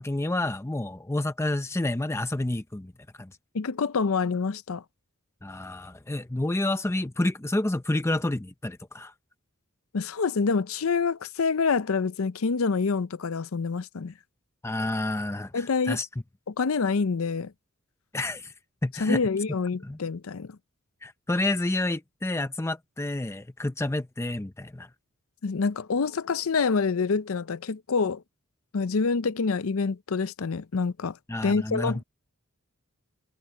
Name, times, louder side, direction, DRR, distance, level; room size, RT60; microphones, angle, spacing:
voice 1, 0.0-2.9 3.2-3.4 5.4-9.1 14.6-16.1 18.1-18.5 18.8-19.2 19.8-20.0 21.0-24.9 31.3-32.0, left 1 dB, 10° left, 0.6 m, -29 dB
voice 2, 3.5-4.8 9.9-14.1 15.5-16.0 16.5-17.5 19.0-20.6 25.4-28.2 28.7-31.2 31.4-32.0, left 4 dB, 70° left, 0.6 m, -26 dB
head